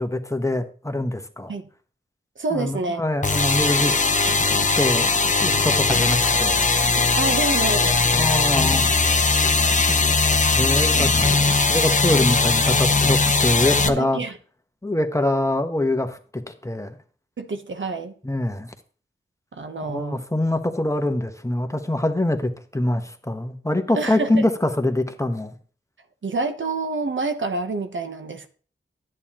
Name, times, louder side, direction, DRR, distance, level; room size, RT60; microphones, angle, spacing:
voice 1, 0.0-1.5 2.5-4.0 4.8-5.1 5.4-6.6 8.1-8.8 9.9-10.0 10.5-11.3 11.7-14.2 14.8-17.0 18.2-18.7 19.8-25.5, left 1 dB, 15° left, 1.1 m, -24 dB
voice 2, 2.4-3.0 7.2-8.0 11.0-11.1 13.8-14.4 17.4-18.1 19.5-20.2 24.0-24.4 26.2-28.5, right 3 dB, 65° right, 1.0 m, -27 dB
sound 1, 3.2-13.9, left 3 dB, 35° left, 0.8 m, -19 dB
10.5 x 8.8 x 3.0 m
cardioid pair, 45°, 21 cm